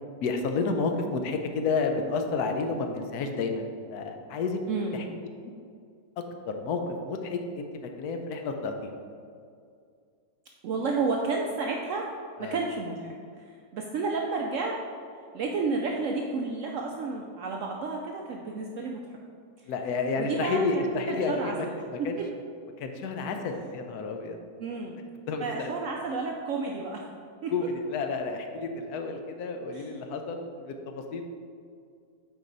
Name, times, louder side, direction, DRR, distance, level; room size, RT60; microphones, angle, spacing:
voice 1, 0.2-4.6 4.9-5.0 6.5-9.0 12.4-12.6 19.7-21.7 21.9-22.2 22.8-24.4 25.3-25.7 27.5-31.2, left 4 dB, 70° left, 5 dB, 1.1 m, -30 dB
voice 2, 4.7-5.1 10.6-12.1 12.4-14.8 15.3-19.2 19.6-19.7 20.2-22.3 24.6-25.0 25.4-27.1 27.4-27.5 29.7-30.0, right 3 dB, 85° right, 0 dB, 0.6 m, -31 dB
7.4 x 4.9 x 3.9 m, 2.3 s
omnidirectional pair, 1.9 m